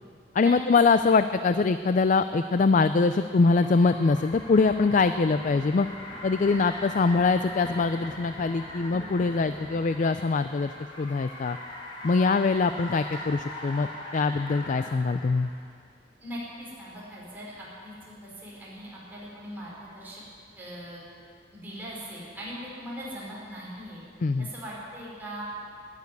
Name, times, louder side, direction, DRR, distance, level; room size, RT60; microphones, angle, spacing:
voice 1, 0.3-5.9 6.2-10.7 11.0-11.6 12.0-13.9 14.1-15.5 24.2-24.5, left 4 dB, 45° left, 11 dB, 0.4 m, -23 dB
Car, 1.7-15.6, left 1 dB, 30° left, 3.1 m, -41 dB
sound 1, 4.2-10.0, equal, 10° left, 1.6 m, -47 dB
voice 2, 16.2-20.2 20.6-21.0 21.5-24.0 24.4-25.4, equal, 10° right, -7 dB, 4.6 m, -40 dB
13.0 x 11.0 x 9.5 m, 2.3 s
head